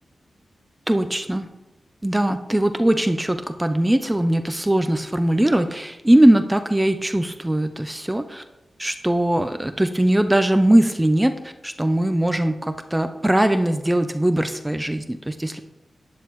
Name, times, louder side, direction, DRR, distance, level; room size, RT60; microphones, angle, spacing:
voice 1, 0.9-1.5 2.0-8.4 8.8-15.6, right 1 dB, 10° right, 8 dB, 0.4 m, -20 dB
12.0 x 10.0 x 3.1 m, 1.0 s
wide cardioid pair, 160°, 0 cm